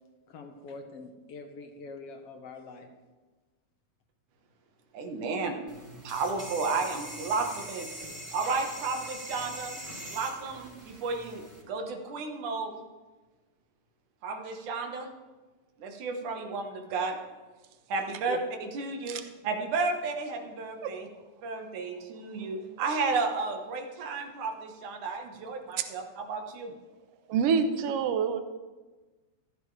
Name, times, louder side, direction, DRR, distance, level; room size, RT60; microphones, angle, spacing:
voice 1, 0.3-2.9, left 3 dB, 60° left, 4 dB, 2.1 m, -45 dB
voice 2, 4.9-5.6 6.0-7.9 8.3-9.8 10.1-12.8 14.2-15.1 15.8-17.2 17.9-19.2 19.4-21.1 21.4-26.7, right 4 dB, 85° right, 4 dB, 2.9 m, -32 dB
sound 1, 5.7-11.6, right 1 dB, 10° right, 4.1 m, -42 dB
voice 3, 27.3-28.4, right 6 dB, 65° right, 8 dB, 1.7 m, -28 dB
15.0 x 14.5 x 3.3 m, 1.2 s
omnidirectional pair, 3.4 m